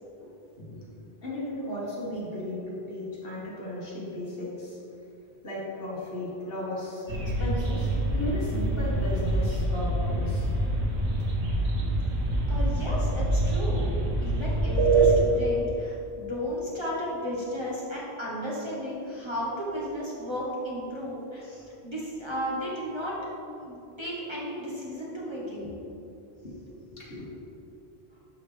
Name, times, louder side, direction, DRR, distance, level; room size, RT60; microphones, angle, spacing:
voice 1, 1.2-4.8 5.4-10.5 25.6-26.0 26.4-26.6 26.9-27.2, left 1 dB, 60° left, -6 dB, 1.9 m, -35 dB
sound 1, 7.1-15.2, right 2 dB, 85° right, 1.3 m, -25 dB
voice 2, 12.5-13.9 14.2-23.2 23.6-25.8, equal, 25° right, -6 dB, 1.4 m, -34 dB
12.0 x 4.2 x 3.4 m, 2.8 s
omnidirectional pair, 1.1 m